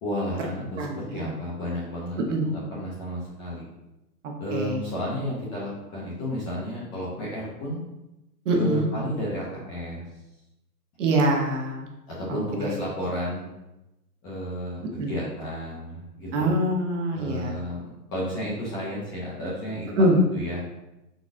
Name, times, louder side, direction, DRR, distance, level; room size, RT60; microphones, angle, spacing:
voice 1, 0.0-3.7 4.4-7.8 8.5-10.0 12.1-13.5 14.2-16.5 17.1-17.8 18.1-19.9 20.3-20.6, equal, 15° left, -7 dB, 0.5 m, -32 dB
voice 2, 0.8-1.3 2.3-2.5 4.2-4.8 8.5-8.9 11.0-11.9 12.6-12.7 15.0-15.1 16.3-17.5 20.0-20.2, right 1 dB, 50° right, 1 dB, 1.0 m, -24 dB
4.9 x 4.0 x 2.5 m, 0.95 s
hypercardioid pair, 130°, 48 cm